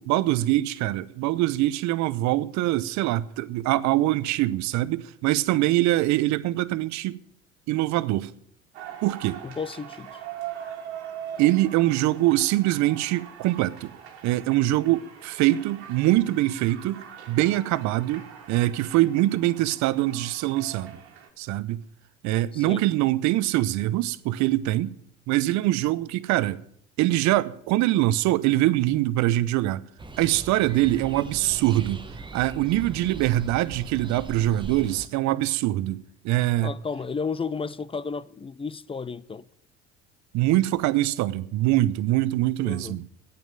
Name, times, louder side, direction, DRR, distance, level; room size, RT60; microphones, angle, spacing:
voice 1, 0.0-7.2 7.7-8.3 9.0-9.4 11.4-13.9 14.2-21.0 21.4-21.8 22.2-24.9 25.3-26.6 27.0-29.8 30.2-32.0 32.3-36.7 40.3-43.0, right 16 dB, 55° right, 0.8 m, -23 dB
sound 1, 8.7-21.3, right 9 dB, 80° right, 2.0 m, -42 dB
voice 2, 9.4-10.2 22.5-22.8 36.6-39.5 42.6-43.0, left 5 dB, 15° left, 0.5 m, -33 dB
sound 2, 30.0-35.1, right 3 dB, 15° right, 1.1 m, -40 dB
9.2 x 8.7 x 8.9 m
hypercardioid pair, 70°, 33 cm